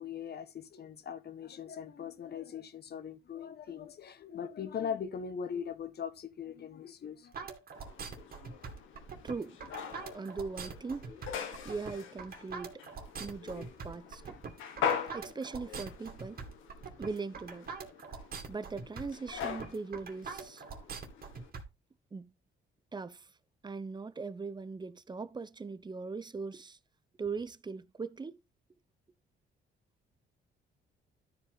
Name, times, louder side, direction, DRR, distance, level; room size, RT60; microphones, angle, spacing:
voice 1, 0.0-7.3, left 7 dB, 55° left, 1.4 m, -40 dB
sound 1, 7.3-21.6, right 5 dB, 50° right, 2.5 m, -43 dB
sound 2, 7.8-21.5, left 7 dB, 90° left, 1.7 m, -42 dB
voice 2, 9.2-9.6 10.1-11.1 11.6-12.7 13.2-14.4 15.1-16.4 17.0-17.7 18.5-20.6 22.1-22.3 22.9-23.3 23.6-26.8 27.2-28.4, right 4 dB, 20° right, 0.8 m, -40 dB
12.5 x 4.9 x 4.1 m
cardioid pair, 90°, 20 cm